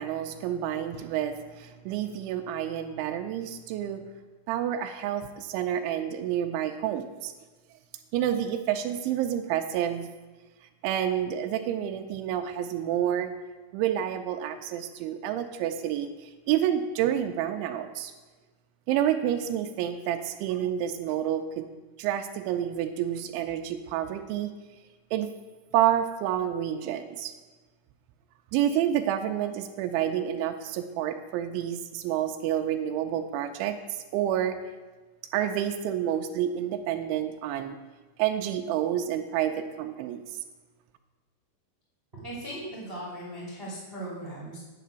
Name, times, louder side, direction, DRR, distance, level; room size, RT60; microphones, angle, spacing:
voice 1, 0.0-4.0 4.5-7.3 8.1-10.1 10.8-13.3 13.7-18.1 18.9-21.7 22.0-24.5 25.1-25.3 25.7-27.3 28.5-34.6 35.3-37.8 38.2-40.2, right 10 dB, 85° right, 6 dB, 3.0 m, -29 dB
voice 2, 42.2-44.6, right 1 dB, 20° right, -6 dB, 1.8 m, -38 dB
9.3 x 5.9 x 8.0 m, 1.2 s
omnidirectional pair, 5.3 m